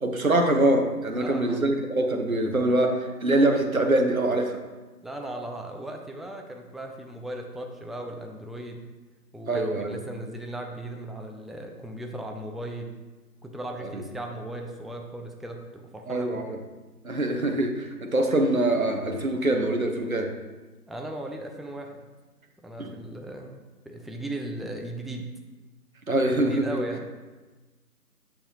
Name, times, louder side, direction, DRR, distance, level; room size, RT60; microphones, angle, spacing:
voice 1, 0.0-4.5 9.5-10.0 13.8-14.0 16.1-16.6 17.0-20.3 22.8-22.9 26.1-26.8, right 1 dB, 55° right, 4 dB, 0.7 m, -24 dB
voice 2, 1.1-1.7 5.0-8.8 9.3-12.9 13.4-16.4 20.9-21.9 22.6-25.3 26.3-27.0, right 1 dB, ahead, 2 dB, 0.4 m, -37 dB
6.6 x 5.5 x 2.9 m, 1.2 s
figure-of-eight pair, 175°, 50 cm